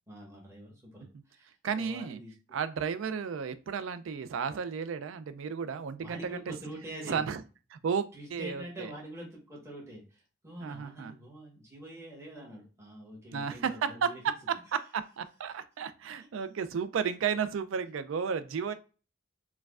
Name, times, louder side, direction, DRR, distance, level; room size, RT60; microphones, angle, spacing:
voice 1, 0.1-2.3 6.0-7.3 8.1-14.2 18.2-18.3, right 1 dB, 15° right, -4 dB, 1.2 m, -45 dB
voice 2, 1.6-2.2 2.5-6.6 7.1-7.4 7.7-8.9 10.6-11.1 13.3-18.7, right 6 dB, 75° right, 12 dB, 0.4 m, -33 dB
4.5 x 2.2 x 2.4 m, 0.35 s
head